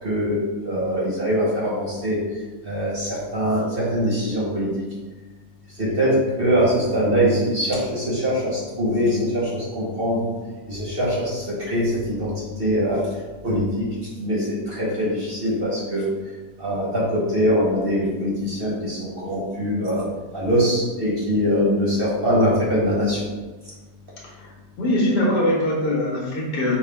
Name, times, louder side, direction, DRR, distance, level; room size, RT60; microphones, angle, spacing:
voice 1, 0.0-2.2 2.6-4.7 5.7-10.2 10.7-12.3 12.6-13.0 13.4-13.9 14.1-16.0 16.6-20.0 20.3-23.3, equal, 45° right, -6 dB, 0.9 m, -22 dB
voice 2, 24.8-26.8, left 1 dB, 85° left, -4 dB, 1.7 m, -21 dB
5.6 x 2.2 x 3.4 m, 1.3 s
omnidirectional pair, 1.7 m